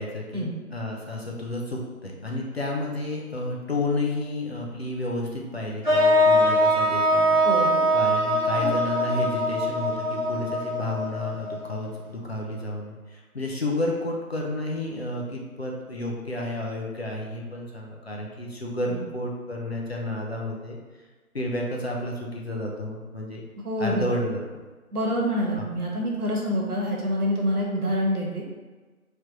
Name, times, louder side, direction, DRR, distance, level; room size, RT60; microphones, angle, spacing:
voice 1, 0.0-7.4 7.9-20.8 21.3-23.4 23.8-24.4 25.5-25.7, left 1 dB, 45° left, -1 dB, 0.6 m, -31 dB
sound 1, 5.8-11.9, equal, 30° right, 0.9 m, -22 dB
voice 2, 7.4-7.8 8.6-8.7 18.9-19.0 23.6-24.1 24.9-28.4, equal, 85° right, -1 dB, 1.2 m, -26 dB
3.3 x 3.0 x 3.7 m, 1.3 s
figure-of-eight pair, 160°, 44 cm